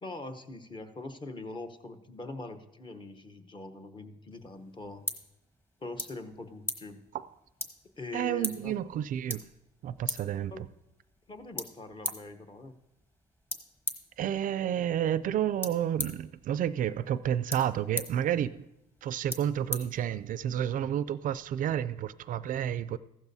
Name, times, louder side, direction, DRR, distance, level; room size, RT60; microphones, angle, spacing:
voice 1, 0.0-5.1 5.8-7.0 8.0-8.7 10.5-10.6 11.3-12.7, left 2 dB, 30° left, 0.9 m, -42 dB
sound 1, 4.3-20.6, left 1 dB, 15° left, 1.2 m, -42 dB
voice 2, 8.1-9.4 9.8-10.6 14.2-18.6 19.0-23.0, right 10 dB, 55° right, 0.4 m, -30 dB
15.0 x 12.0 x 2.7 m
cardioid pair, 110°, 17 cm